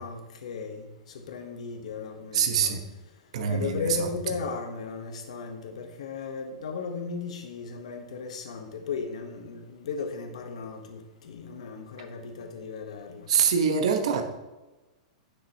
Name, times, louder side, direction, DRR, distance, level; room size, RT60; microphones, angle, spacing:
voice 1, 0.0-2.7 3.5-13.3, left 5 dB, 85° left, 5 dB, 1.0 m, -36 dB
voice 2, 2.3-2.8 3.3-4.1 13.3-14.2, right 7 dB, 75° right, 5 dB, 1.1 m, -24 dB
9.7 x 6.7 x 2.9 m, 1.1 s
supercardioid pair, 155°, 3 cm